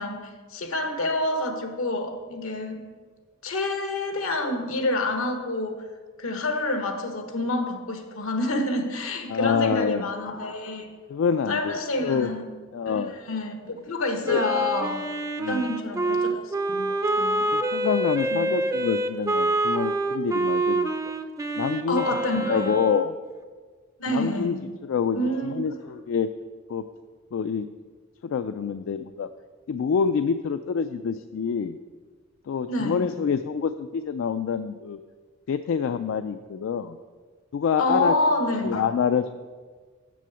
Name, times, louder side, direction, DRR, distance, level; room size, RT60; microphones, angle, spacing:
voice 1, 0.0-2.8 3.4-5.8 6.2-10.9 11.5-12.5 12.8-15.0 15.5-17.5 18.3-18.6 21.9-22.8 24.0-24.6 25.1-25.7 32.7-33.1 37.8-38.9, left 2 dB, 85° left, 5 dB, 1.2 m, -28 dB
voice 2, 9.3-10.1 11.1-12.3 12.7-13.1 14.2-14.5 15.4-15.7 17.5-20.9 21.6-22.1 22.5-23.1 24.1-26.3 26.7-26.8 27.3-27.7 28.2-29.3 29.7-31.8 32.5-35.0 35.5-37.0 37.5-38.1 38.6-39.4, left 6 dB, 65° left, 10 dB, 0.3 m, -26 dB
Wind instrument woodwind instrument, 14.2-23.1, right 2 dB, 15° right, 0.4 m, -26 dB
7.6 x 6.2 x 6.9 m, 1.5 s
head